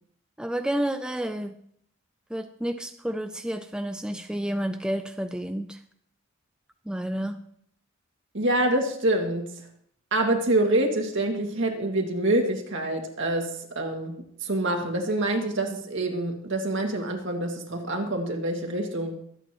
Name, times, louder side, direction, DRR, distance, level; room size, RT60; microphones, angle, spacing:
voice 1, 0.4-1.6 2.3-5.8 6.9-7.4, right 1 dB, 5° right, 7 dB, 0.4 m, -30 dB
voice 2, 8.3-9.5 10.1-19.2, right 1 dB, 60° right, 2 dB, 2.2 m, -26 dB
24.5 x 8.9 x 3.0 m, 0.68 s
head